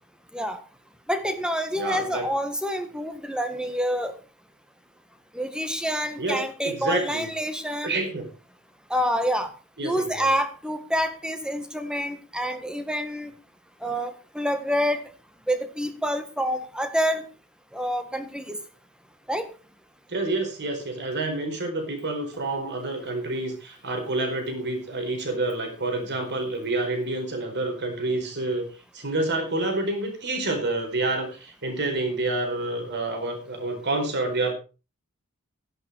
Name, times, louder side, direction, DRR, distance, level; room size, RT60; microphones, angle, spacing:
voice 1, 1.1-4.2 5.3-7.9 8.9-9.5 9.8-13.3 13.8-15.0 15.5-17.2 17.7-18.6 19.3-19.5, equal, 5° right, 9 dB, 1.7 m, -27 dB
voice 2, 1.8-2.3 6.2-7.3 7.8-8.3 9.8-10.3 20.1-28.7 28.9-34.5, right 2 dB, 50° right, 4 dB, 4.6 m, -28 dB
13.5 x 11.0 x 4.7 m, 0.32 s
head